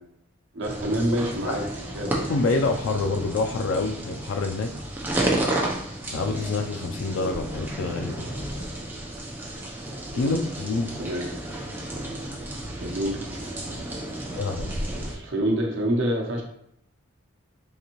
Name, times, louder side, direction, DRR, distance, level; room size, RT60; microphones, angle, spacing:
voice 1, 0.5-1.6 1.9-2.1 10.1-10.4 11.0-11.3 12.7-13.2 14.8-16.4, right 1 dB, 65° right, 0 dB, 0.8 m, -27 dB
sound 1, 0.6-15.1, right 1 dB, 10° right, 0.7 m, -32 dB
voice 2, 2.3-4.7 6.1-8.2 10.1-10.9 14.4-14.7, left 3 dB, 75° left, 4 dB, 0.4 m, -27 dB
3.9 x 3.3 x 3.0 m, 0.75 s
head